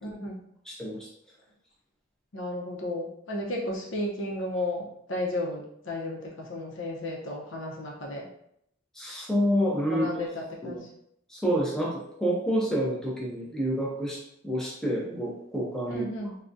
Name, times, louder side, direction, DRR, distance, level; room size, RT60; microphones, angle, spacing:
voice 1, 0.0-0.4 2.3-8.3 9.9-10.9 15.9-16.4, left 1 dB, 80° left, -1 dB, 0.7 m, -33 dB
voice 2, 0.7-1.1 8.9-10.2 10.6-10.8 11.3-16.1, equal, 5° left, -4 dB, 0.5 m, -28 dB
3.6 x 2.3 x 2.6 m, 0.73 s
head